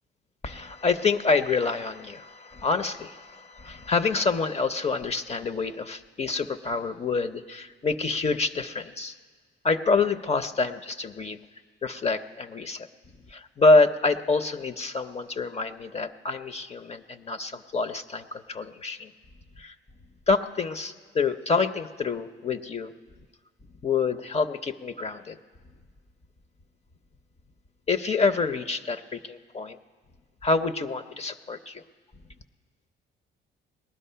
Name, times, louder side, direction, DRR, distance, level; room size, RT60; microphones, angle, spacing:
voice 1, 0.4-9.1 9.6-11.4 11.8-12.9 13.3-19.1 19.6-19.7 20.3-22.9 23.8-25.4 27.9-29.8 30.4-31.8, left 4 dB, 35° left, 10 dB, 0.6 m, -27 dB
19.0 x 12.0 x 5.6 m, 1.5 s
cardioid pair, 90°, 20 cm